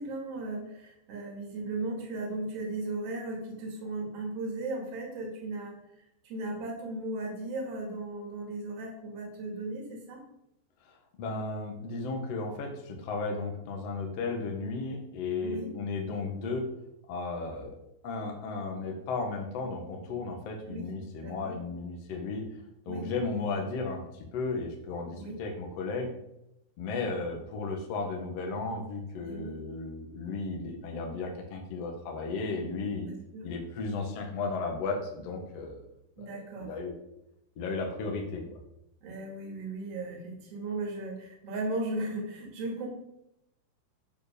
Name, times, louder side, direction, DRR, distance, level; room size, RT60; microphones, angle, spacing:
voice 1, 0.0-5.8 6.2-10.2 15.4-15.7 20.7-20.9 21.2-21.6 22.9-23.1 25.1-25.4 29.2-29.5 33.0-33.5 36.2-36.7 39.0-42.9, right 2 dB, 40° right, 0 dB, 2.6 m, -36 dB
voice 2, 10.8-16.7 17.1-17.7 18.0-22.4 22.8-26.1 26.8-33.1 33.4-35.8 36.2-36.9 37.6-38.6, left 3 dB, 75° left, 2 dB, 1.4 m, -34 dB
9.9 x 6.8 x 5.3 m, 0.84 s
omnidirectional pair, 5.5 m